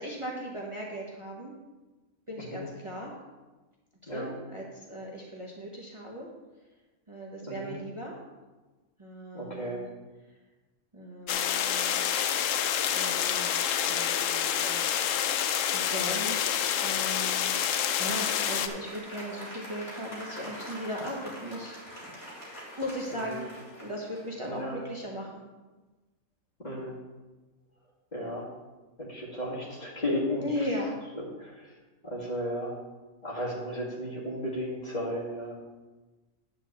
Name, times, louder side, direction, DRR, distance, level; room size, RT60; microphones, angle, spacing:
voice 1, 0.0-1.5 2.3-3.1 4.0-6.3 7.1-8.2 9.0-9.9 10.9-12.0 12.9-14.7 15.7-17.5 17.9-21.8 22.8-23.4 23.8-25.4 30.3-31.0, equal, 25° right, -3 dB, 1.3 m, -37 dB
voice 2, 9.3-9.8 23.3-23.4 24.4-24.8 26.6-27.0 28.1-28.4 29.0-30.5 31.4-31.7 32.0-32.7 33.2-35.6, equal, 30° left, -5 dB, 2.3 m, -34 dB
sound 1, 11.3-18.7, left 9 dB, 75° left, 0.9 m, -28 dB
Applause, 17.9-24.7, equal, 55° left, 2.7 m, -44 dB
9.5 x 4.6 x 7.2 m, 1.2 s
omnidirectional pair, 1.4 m